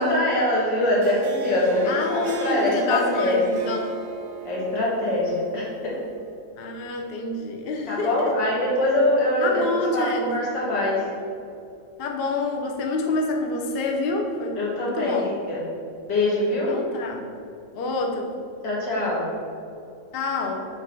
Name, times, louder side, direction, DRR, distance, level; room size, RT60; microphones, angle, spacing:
voice 1, 0.0-3.6 4.4-6.0 7.9-11.1 14.6-15.7 16.1-16.8 18.6-19.3, left 1 dB, 75° left, -5 dB, 2.4 m, -23 dB
Harp, 0.8-6.3, right 6 dB, 70° right, 1.1 m, -36 dB
voice 2, 1.9-4.0 6.6-8.3 9.4-10.3 12.0-15.3 16.7-17.2 17.7-18.3 20.1-20.7, left 2 dB, 55° left, 1 dB, 0.6 m, -27 dB
5.7 x 4.1 x 5.9 m, 2.5 s
omnidirectional pair, 1.9 m